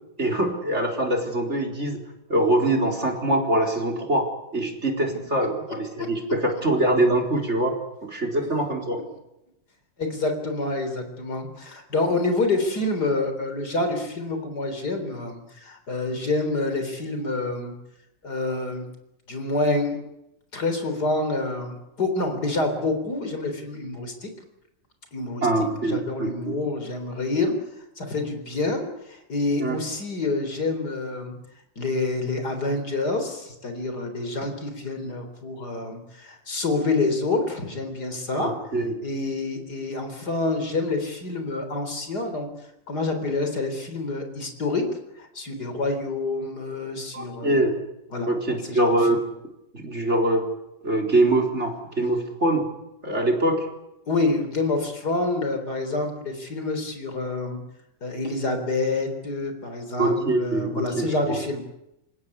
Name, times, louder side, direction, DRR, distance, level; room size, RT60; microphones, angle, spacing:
voice 1, 0.2-2.0 2.3-7.7 8.0-9.0 25.4-26.5 29.6-29.8 38.4-39.0 47.1-47.7 48.3-49.2 49.7-50.4 50.8-52.7 53.0-53.7 60.0-61.4, right 1 dB, 35° right, 2 dB, 4.4 m, -23 dB
voice 2, 10.0-17.8 18.2-18.9 19.3-20.0 20.5-24.3 25.1-27.6 28.0-31.4 31.8-38.5 39.0-42.5 42.9-44.8 45.2-47.6 48.1-49.2 54.1-57.6 58.0-61.6, left 2 dB, 60° left, 6 dB, 4.4 m, -27 dB
28.0 x 16.5 x 9.8 m, 0.86 s
omnidirectional pair, 2.0 m